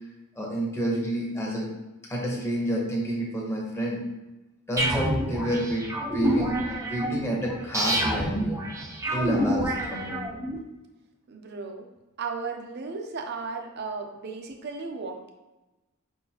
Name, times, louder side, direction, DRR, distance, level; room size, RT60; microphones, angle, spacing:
voice 1, 0.4-1.7 2.1-4.0 4.7-6.6 6.8-8.6 9.1-10.2, right 1 dB, 15° left, -3 dB, 0.9 m, -29 dB
sound 1, 4.8-10.6, right 1 dB, 15° right, 0.6 m, -28 dB
voice 2, 11.3-11.9 12.2-15.3, right 4 dB, 50° right, 4 dB, 0.6 m, -35 dB
5.0 x 3.7 x 2.8 m, 1.1 s
head